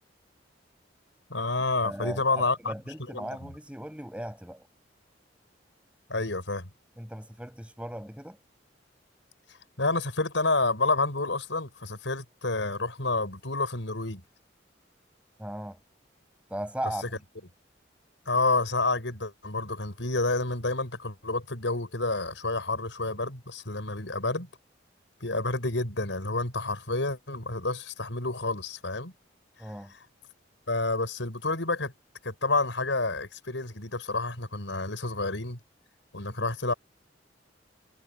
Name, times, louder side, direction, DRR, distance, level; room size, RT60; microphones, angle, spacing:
voice 1, 1.3-2.7 3.1-3.3 6.1-6.7 9.8-14.2 18.3-24.5 25.2-29.1 30.7-31.9 32.2-35.6 36.1-36.7, left 3 dB, 80° left, 5.6 m, -29 dB
voice 2, 1.8-4.7 7.0-8.4 15.4-15.8 16.5-17.2 29.6-29.9, right 1 dB, 5° right, 7.3 m, -37 dB
head